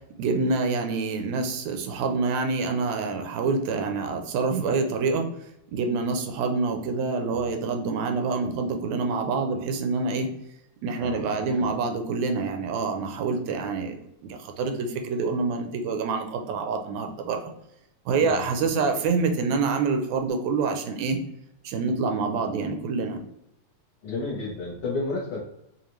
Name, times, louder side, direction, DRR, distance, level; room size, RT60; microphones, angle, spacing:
voice 1, 0.0-5.3 5.7-10.3 10.8-17.5 18.1-21.2 21.6-23.2, right 4 dB, 80° right, 5 dB, 1.8 m, -26 dB
voice 2, 7.2-7.5 11.0-11.8 18.2-18.5 24.0-25.4, left 3 dB, 60° left, -5 dB, 1.6 m, -33 dB
5.0 x 2.5 x 3.0 m, 0.84 s
omnidirectional pair, 3.3 m